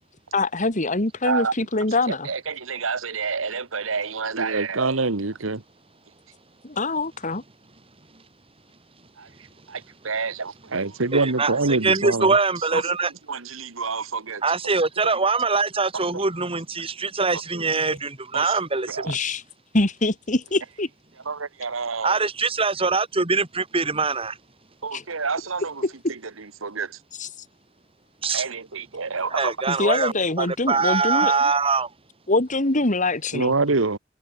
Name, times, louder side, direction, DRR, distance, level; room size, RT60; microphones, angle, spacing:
voice 1, 0.3-2.3 6.6-7.4 19.1-19.4 19.7-20.9 24.9-25.0 25.8-25.9 27.2-27.3 29.7-31.3 32.3-33.5, left 2 dB, 40° left, 2.4 m, -24 dB
voice 2, 1.2-1.5 2.1-5.6 9.2-12.9 13.3-14.4 15.9-16.2 17.3-18.0 18.3-18.6 18.9-19.1 21.2-22.2 24.8-25.8 26.1-27.0 28.2-29.6 33.3-34.0, right 4 dB, 85° right, 1.5 m, -27 dB
voice 3, 11.1-13.1 14.4-19.1 22.0-24.4 28.2-28.4 29.3-31.9, right 4 dB, 30° right, 2.5 m, -23 dB
head